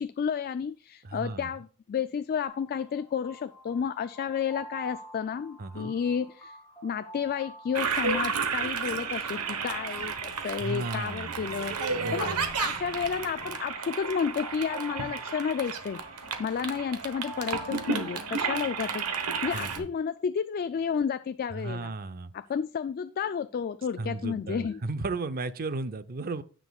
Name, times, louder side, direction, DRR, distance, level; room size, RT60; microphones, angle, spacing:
voice 1, 0.0-6.6 6.8-11.8 12.1-12.3 12.6-16.0 16.4-21.9 22.3-24.8, left 7 dB, 45° left, 0.3 m, -31 dB
voice 2, 1.0-1.5 5.6-5.9 10.6-11.4 11.9-12.5 19.5-19.9 21.6-22.3 24.0-26.4, right 3 dB, 40° right, 0.5 m, -35 dB
sound 1, 2.4-19.7, equal, 15° left, 2.9 m, -49 dB
Toilet flush, 7.7-19.8, right 5 dB, 90° right, 1.1 m, -32 dB
16.0 x 6.1 x 2.3 m
head